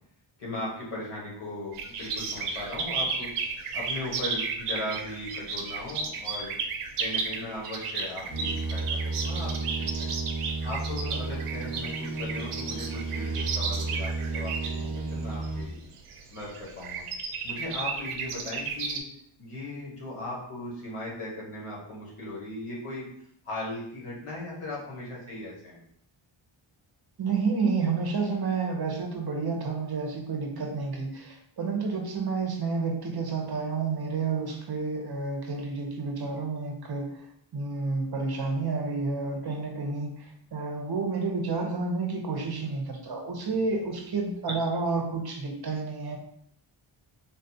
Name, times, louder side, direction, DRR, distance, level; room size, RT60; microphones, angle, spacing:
voice 1, 0.4-3.3 3.7-6.6 7.0-10.1 10.6-15.8 16.3-17.0 17.4-19.0 19.4-23.1 23.4-25.8 44.5-44.6, left 1 dB, 80° left, -4 dB, 1.3 m, -38 dB
sound 1, 1.7-19.0, right 4 dB, 90° right, 0.6 m, -34 dB
sound 2, 8.3-15.7, right 3 dB, 15° left, 1.0 m, -33 dB
voice 2, 27.2-37.2 37.5-46.2, right 4 dB, 50° right, 2 dB, 0.7 m, -30 dB
3.7 x 2.3 x 2.7 m, 0.69 s
wide cardioid pair, 90°, 50 cm